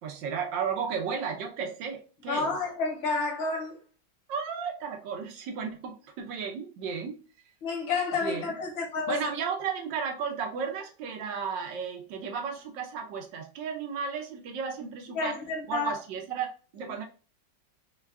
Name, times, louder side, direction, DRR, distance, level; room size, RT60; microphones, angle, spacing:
voice 1, 0.0-2.5 4.3-7.2 8.2-8.5 9.1-17.1, right 6 dB, 75° right, 1.3 m, -34 dB
voice 2, 2.3-3.8 7.6-9.3 15.1-15.9 16.8-16.9, left 4 dB, 75° left, 1.9 m, -30 dB
4.7 x 2.2 x 3.5 m
omnidirectional pair, 2.1 m